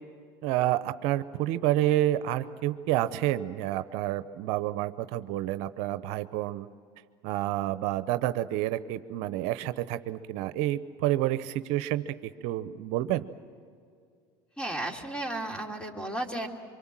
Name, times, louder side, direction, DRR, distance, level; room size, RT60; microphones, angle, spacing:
voice 1, 0.4-6.7 7.2-12.1 12.4-13.3, right 14 dB, 70° right, 12 dB, 0.8 m, -29 dB
voice 2, 14.6-16.5, right 1 dB, 10° left, 3 dB, 2.9 m, -33 dB
25.0 x 23.5 x 7.5 m, 2.3 s
supercardioid pair, 105°, 12 cm